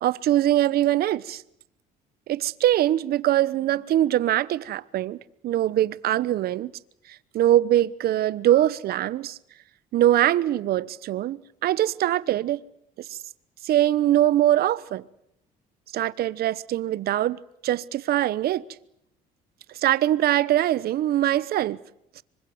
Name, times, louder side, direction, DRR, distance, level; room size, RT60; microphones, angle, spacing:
voice 1, 0.0-1.4 2.3-5.2 5.4-6.7 7.3-9.4 9.9-12.6 13.6-15.0 15.9-17.4 17.6-18.6 19.8-21.8 22.2-22.3, right 13 dB, 65° right, 1.0 m, -22 dB
26.5 x 24.5 x 7.9 m
cardioid pair, 110°, 17 cm